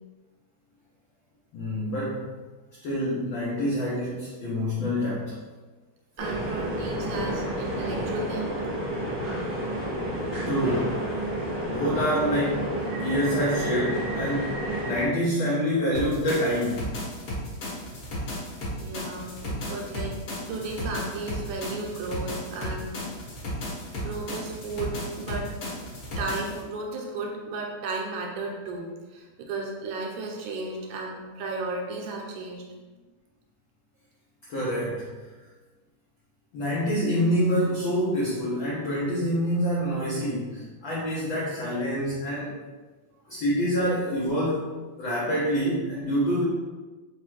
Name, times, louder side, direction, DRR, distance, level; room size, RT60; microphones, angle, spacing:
voice 1, 1.5-2.3 2.8-5.4 10.5-11.0 11.7-12.6 13.0-14.6 14.8-16.9 34.5-35.1 36.5-42.5 43.3-44.7 45.0-46.4, equal, 85° left, -6 dB, 1.0 m, -26 dB
sound 1, 6.2-15.1, right 1 dB, 60° right, 0.4 m, -30 dB
voice 2, 6.2-8.5 18.8-20.2 20.5-22.9 24.0-32.6, right 3 dB, 75° right, 0 dB, 2.0 m, -34 dB
sound 2, 15.9-26.6, equal, 55° left, 1.6 m, -34 dB
4.8 x 2.2 x 4.5 m, 1.3 s
omnidirectional pair, 3.3 m